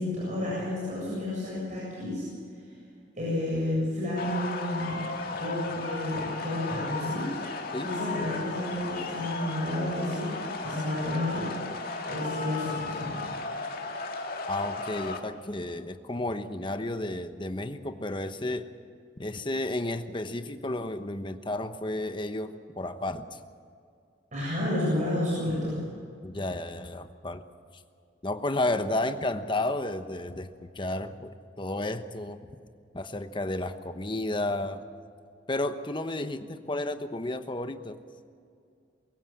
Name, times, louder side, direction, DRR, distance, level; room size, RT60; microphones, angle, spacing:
voice 1, 0.0-2.2 3.2-10.3 10.6-11.5 12.1-13.3 24.3-25.8, left 1 dB, 45° right, -7 dB, 7.7 m, -31 dB
sound 1, 4.2-15.2, left 3 dB, 55° left, 2.3 m, -35 dB
voice 2, 14.5-18.7 19.2-23.4 26.2-27.4 28.2-31.3 31.6-32.4 32.9-34.8 35.5-38.0, left 2 dB, 25° left, 9 dB, 1.1 m, -32 dB
23.5 x 16.0 x 7.4 m, 2.4 s
head